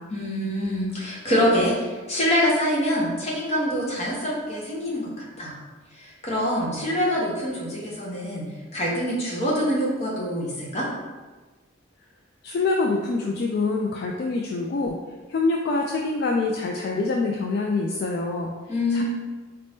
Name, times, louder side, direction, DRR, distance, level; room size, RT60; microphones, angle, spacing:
voice 1, 0.1-5.1 5.4-5.6 5.9-10.9 18.7-19.0, equal, 35° left, -5 dB, 1.0 m, -25 dB
voice 2, 12.4-15.0 15.3-18.5 18.9-19.0, left 3 dB, 55° left, 1 dB, 0.3 m, -25 dB
4.1 x 2.6 x 3.5 m, 1.3 s
head